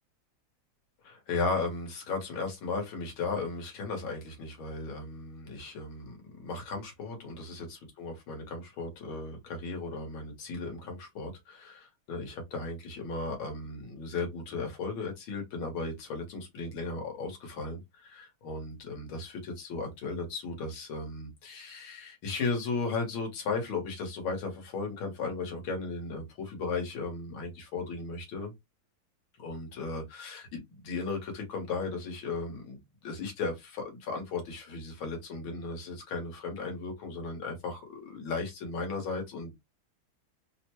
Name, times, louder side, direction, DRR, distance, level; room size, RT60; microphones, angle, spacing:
voice 1, 1.0-28.5 29.4-39.5, left 3 dB, 75° left, 2.0 m, -36 dB
4.0 x 2.1 x 2.9 m
omnidirectional pair, 2.3 m